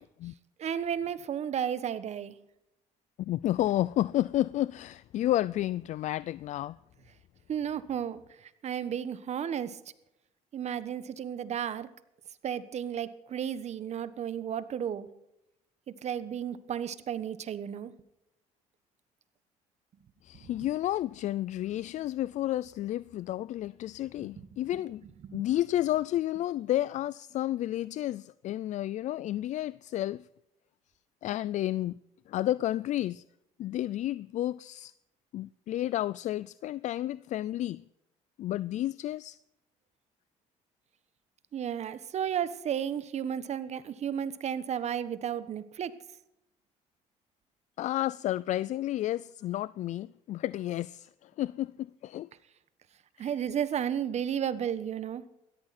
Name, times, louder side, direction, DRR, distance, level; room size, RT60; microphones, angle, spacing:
voice 1, 0.6-2.3 7.5-9.8 10.5-11.9 12.4-15.1 15.9-17.9 20.4-20.7 24.2-24.3 25.3-25.5 41.5-45.9 53.2-55.2, right 9 dB, 50° right, 1.3 m, -33 dB
voice 2, 3.2-6.8 20.2-25.0 25.3-30.3 31.2-32.0 32.3-33.2 33.6-34.9 35.3-37.8 38.4-39.4 47.8-52.3 53.2-53.3, left 14 dB, 60° left, 0.4 m, -31 dB
16.5 x 13.5 x 4.3 m
supercardioid pair, 85°, 14 cm